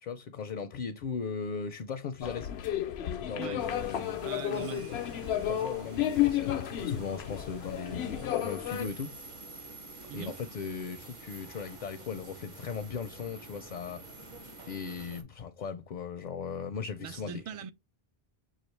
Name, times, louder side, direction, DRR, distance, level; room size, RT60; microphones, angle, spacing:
voice 1, 0.0-2.5 3.2-4.2 5.5-9.1 10.1-17.4, left 6 dB, 55° left, 0.6 m, -38 dB
sound 1, 2.2-8.9, left 11 dB, 85° left, 0.9 m, -32 dB
voice 2, 3.3-3.7 4.2-4.9 10.1-10.4 17.0-17.7, right 8 dB, 50° right, 0.4 m, -41 dB
sound 2, 3.6-15.2, right 2 dB, 35° right, 0.8 m, -48 dB
6.5 x 2.5 x 3.1 m
omnidirectional pair, 1.0 m